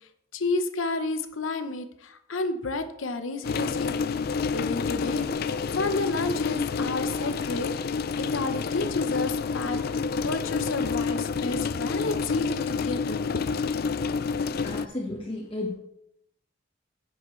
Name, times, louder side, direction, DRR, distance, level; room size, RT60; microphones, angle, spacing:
voice 1, 0.3-4.1 4.5-13.7, left 3 dB, 90° left, 8 dB, 0.8 m, -31 dB
sound 1, 3.4-14.9, left 5 dB, 50° left, 0.4 m, -29 dB
voice 2, 14.6-15.7, left 2 dB, 25° left, -4 dB, 1.3 m, -33 dB
10.5 x 7.8 x 3.2 m, 0.77 s
head